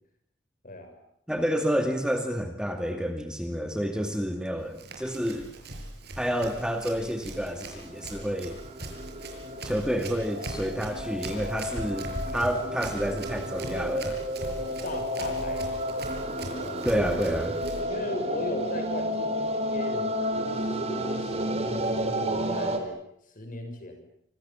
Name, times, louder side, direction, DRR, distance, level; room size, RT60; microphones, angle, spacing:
voice 1, 1.3-5.5 6.2-8.6 9.6-14.2 16.8-17.5, equal, 5° right, 5 dB, 2.4 m, -29 dB
Run, 4.6-17.8, right 2 dB, 60° right, 6.8 m, -41 dB
sound 1, 7.3-22.8, equal, 35° right, 3.7 m, -32 dB
voice 2, 14.8-15.8 16.5-16.9 17.9-20.2 20.5-23.0 23.3-24.1, left 1 dB, 45° left, 6 dB, 7.1 m, -37 dB
27.5 x 25.5 x 7.4 m, 0.71 s
head